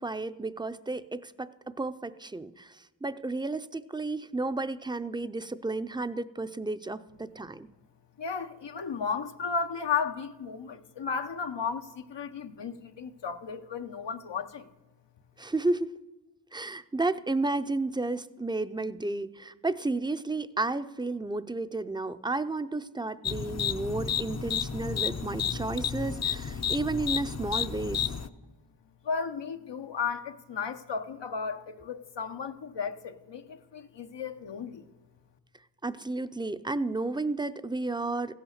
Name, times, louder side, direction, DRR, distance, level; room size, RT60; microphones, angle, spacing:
voice 1, 0.0-7.7 15.4-15.9 16.5-28.0 35.8-38.3, right 2 dB, 10° right, 12 dB, 0.5 m, -32 dB
voice 2, 8.2-14.7 29.0-34.8, left 6 dB, 85° left, 7 dB, 0.9 m, -34 dB
sound 1, 23.2-28.3, left 7 dB, 40° left, 0.6 m, -31 dB
16.0 x 8.8 x 6.5 m, 1.2 s
wide cardioid pair, 50°, 42 cm